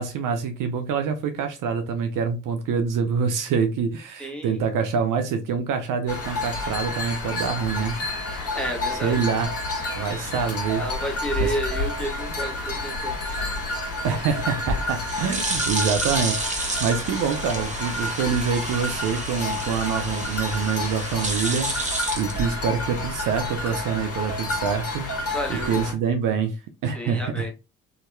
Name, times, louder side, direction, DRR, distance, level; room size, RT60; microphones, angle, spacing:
voice 1, 0.0-8.3 8.9-9.5 10.0-11.0 11.4-11.6 14.0-27.5, right 6 dB, 60° right, 0.6 m, -26 dB
voice 2, 4.2-4.6 8.5-9.1 10.8-13.1 25.3-25.9 26.9-27.5, right 1 dB, 5° left, 1.3 m, -31 dB
sound 1, 6.1-25.9, left 2 dB, 40° left, 1.5 m, -30 dB
sound 2, 14.7-23.0, right 2 dB, 20° right, 0.8 m, -30 dB
2.8 x 2.8 x 2.2 m
hypercardioid pair, 55°, 37 cm